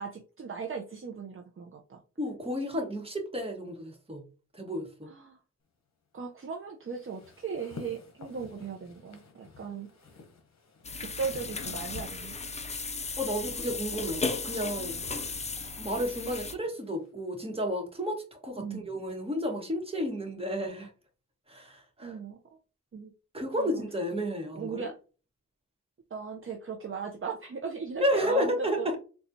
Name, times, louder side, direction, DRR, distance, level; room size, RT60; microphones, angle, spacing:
voice 1, 0.0-2.0 5.1-5.4 6.1-9.9 11.0-12.3 18.6-18.9 22.0-22.4 22.9-23.1 23.6-23.8 24.5-24.9 26.1-28.9, right 5 dB, 45° right, 0.6 m, -37 dB
voice 2, 2.2-4.2 4.5-5.1 13.2-15.0 15.8-20.9 21.5-22.2 23.3-24.8 28.0-29.0, equal, 20° right, 1.2 m, -32 dB
sound 1, 6.9-12.5 13.6-17.1, left 4 dB, 60° left, 0.9 m, -51 dB
sound 2, 10.8-16.5, left 4 dB, 20° left, 0.4 m, -35 dB
4.2 x 2.3 x 2.6 m
cardioid pair, 65°, 31 cm